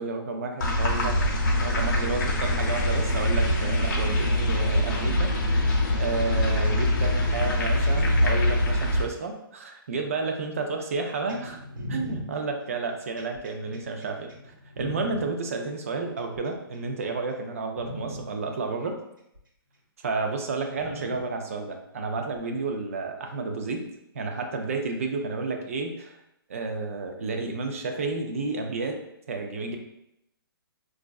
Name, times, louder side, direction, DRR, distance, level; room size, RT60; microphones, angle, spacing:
voice 1, 0.0-5.3 5.7-11.6 11.9-19.0 20.0-23.8 24.1-26.2 26.5-29.0 29.3-29.8, right 3 dB, 35° right, 4 dB, 0.4 m, -31 dB
sound 1, 0.6-9.0, left 1 dB, 50° left, 0.7 m, -24 dB
sound 2, 11.3-15.2 16.2-16.8 17.3-17.4 17.8-18.2 19.3-19.4 20.8-21.2 22.4-22.5, left 1 dB, 55° right, 1.0 m, -38 dB
5.0 x 2.4 x 2.3 m, 0.81 s
hypercardioid pair, 175°, 13 cm